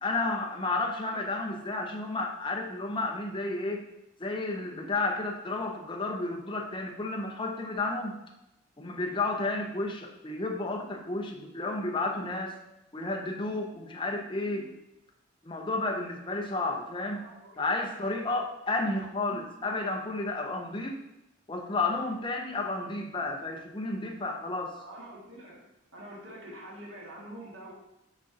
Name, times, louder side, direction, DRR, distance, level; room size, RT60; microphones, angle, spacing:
voice 1, 0.0-3.9 4.2-8.2 8.8-12.6 12.9-14.7 15.4-17.2 17.6-21.0 21.5-24.8, left 2 dB, 25° left, 2 dB, 0.6 m, -32 dB
voice 2, 17.1-17.6 17.9-18.2 19.2-19.4 24.7-25.7 25.9-27.7, right 1 dB, 80° right, -3 dB, 1.8 m, -45 dB
6.3 x 5.3 x 3.8 m, 0.89 s
head